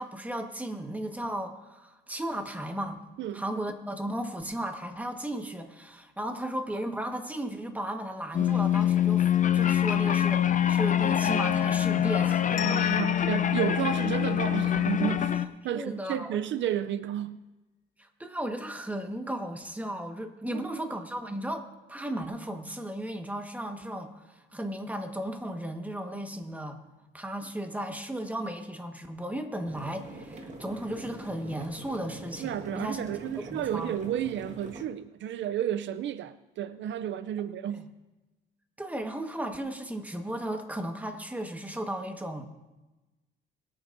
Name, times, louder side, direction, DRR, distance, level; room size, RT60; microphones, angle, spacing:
voice 1, 0.0-3.0 3.3-12.6 15.7-16.4 18.0-26.8 27.1-33.0 33.5-33.9 37.4-37.9 38.8-42.4, right 1 dB, 5° right, 1.4 m, -35 dB
sound 1, 8.3-15.5, left 10 dB, 40° left, 0.6 m, -25 dB
voice 2, 12.5-15.3 15.6-17.4 20.5-20.9 32.4-37.9, right 10 dB, 70° right, 0.5 m, -32 dB
sound 2, 12.6-15.3, left 9 dB, 65° left, 1.3 m, -43 dB
sound 3, 29.6-34.8, right 2 dB, 35° right, 1.6 m, -44 dB
23.0 x 8.7 x 2.6 m
cardioid pair, 90°, 20 cm